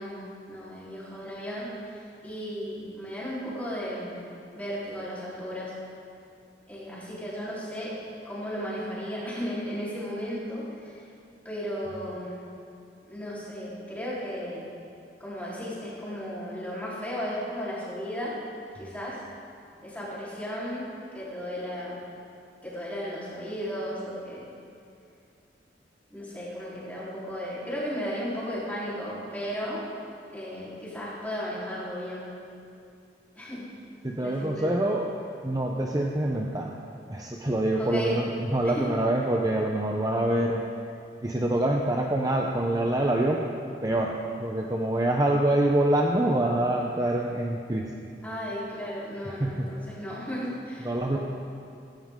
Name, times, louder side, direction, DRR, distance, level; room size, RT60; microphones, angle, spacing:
voice 1, 0.0-1.7 2.2-4.2 4.5-5.7 6.7-7.9 8.2-11.0 11.4-12.4 13.1-14.7 15.2-18.4 18.7-19.2 19.8-20.9 21.1-22.0 22.6-24.4 26.1-29.8 30.3-32.3 33.4-33.7 34.2-34.9 37.8-38.1 38.6-38.9 48.2-51.2, equal, 10° left, -8 dB, 3.9 m, -35 dB
voice 2, 34.0-35.1 35.4-36.8 37.1-40.6 41.2-43.5 43.8-47.9 49.2-49.7 50.8-51.2, right 1 dB, 20° right, 0 dB, 0.7 m, -25 dB
16.5 x 15.0 x 3.7 m, 2.5 s
head